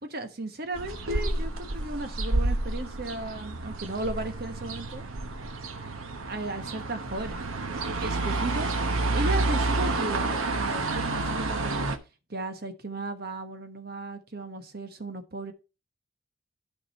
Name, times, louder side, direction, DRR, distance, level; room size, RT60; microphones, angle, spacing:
voice 1, 0.0-5.0 6.2-7.4 7.9-11.9 12.3-15.5, right 2 dB, 50° right, 7 dB, 1.2 m, -35 dB
sound 1, 0.7-12.0, right 2 dB, 90° right, 1.1 m, -29 dB
11.5 x 5.1 x 4.3 m, 0.30 s
head